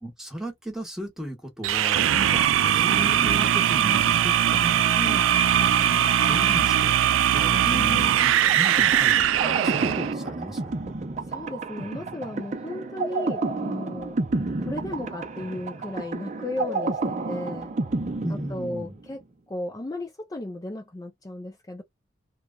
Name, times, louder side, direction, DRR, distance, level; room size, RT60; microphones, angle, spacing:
voice 1, 0.0-4.8 5.4-10.7 18.2-18.9, right 1 dB, ahead, 0.9 m, -35 dB
sound 1, 1.6-10.1, right 10 dB, 80° right, 0.3 m, -21 dB
voice 2, 4.9-5.3 7.6-8.1 11.2-14.2 14.6-17.8 18.3-19.2 19.5-21.8, left 1 dB, 20° left, 0.4 m, -35 dB
sound 2, 8.5-19.2, right 3 dB, 35° right, 0.6 m, -30 dB
2.9 x 2.3 x 2.2 m
head